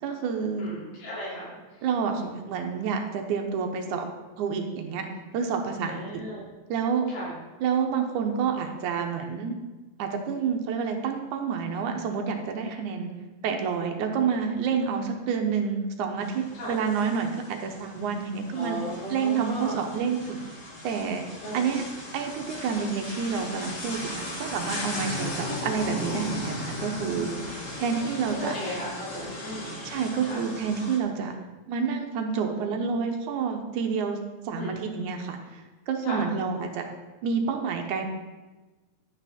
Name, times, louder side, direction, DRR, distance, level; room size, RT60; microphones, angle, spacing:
voice 1, 0.0-0.6 1.8-4.1 4.4-5.1 5.3-6.2 6.7-7.1 7.6-9.6 10.0-13.1 13.4-18.8 19.1-20.4 20.8-21.2 21.5-21.9 22.1-27.3 27.8-28.5 29.9-31.4 31.7-34.2 34.5-36.9 37.2-38.0, right 6 dB, 70° right, 4 dB, 2.1 m, -28 dB
voice 2, 0.6-1.9 5.8-6.4 7.1-7.4 12.9-13.1 16.5-16.8 18.5-19.8 21.4-21.8 27.1-27.5 28.3-29.8 30.2-30.4 34.5-34.8 36.0-36.2, equal, 85° left, -7 dB, 5.1 m, -36 dB
sound 1, 16.2-31.0, left 1 dB, 55° left, 0.8 m, -37 dB
11.5 x 8.6 x 4.3 m, 1.2 s
omnidirectional pair, 4.1 m